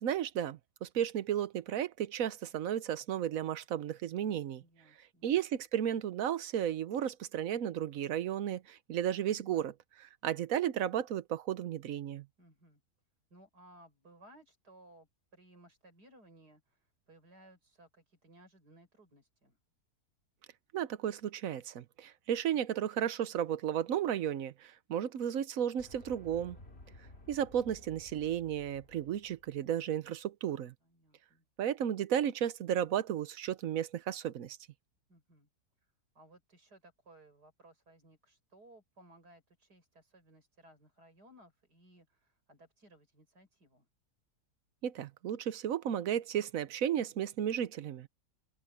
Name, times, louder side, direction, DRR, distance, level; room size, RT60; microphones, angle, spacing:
voice 1, 0.0-4.6 5.2-12.3 20.7-26.6 27.3-30.7 31.6-34.6 44.8-48.1, right 10 dB, 60° right, 1.2 m, -34 dB
voice 2, 4.6-5.3 12.4-12.8 13.3-19.6 30.8-31.5 35.1-35.5 36.1-43.9, right 1 dB, 85° right, 7.5 m, -60 dB
sound 1, 25.8-29.7, left 1 dB, 40° left, 3.3 m, -55 dB
omnidirectional pair, 1.7 m